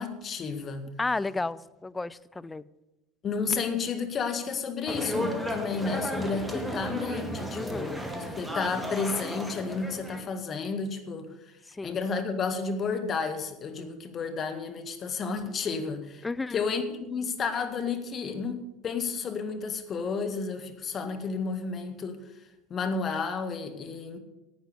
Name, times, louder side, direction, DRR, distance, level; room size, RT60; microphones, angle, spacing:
voice 1, 0.0-0.9 3.2-11.5 11.8-16.2 16.5-22.2 22.7-24.2, left 5 dB, 40° left, 7 dB, 1.5 m, -32 dB
voice 2, 1.0-2.6 7.5-7.9 11.7-12.0 13.8-14.0 16.2-16.6, left 3 dB, 15° left, 16 dB, 0.4 m, -33 dB
sound 1, 4.9-10.3, equal, 5° right, 1.9 m, -34 dB
10.5 x 8.9 x 6.7 m, 0.97 s
hypercardioid pair, 75°, 0 cm